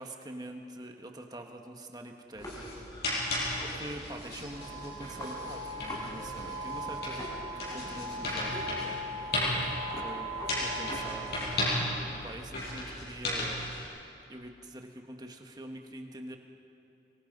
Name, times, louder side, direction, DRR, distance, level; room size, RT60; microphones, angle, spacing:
voice 1, 0.0-2.9 3.7-9.4 10.0-10.3 10.6-11.3 12.0-13.7 14.3-16.4, right 1 dB, 20° right, 3 dB, 1.5 m, -45 dB
sound 1, 2.4-13.8, left 1 dB, 55° left, 7.1 m, -35 dB
sound 2, 2.4-6.1 6.4-6.5 6.8-8.1 8.5-8.7 9.0-11.6 12.0-13.4, left 1 dB, 20° left, 4.1 m, -46 dB
sound 3, 4.4-11.8, right 1 dB, 65° right, 5.5 m, -40 dB
25.0 x 23.0 x 5.4 m, 2.9 s
head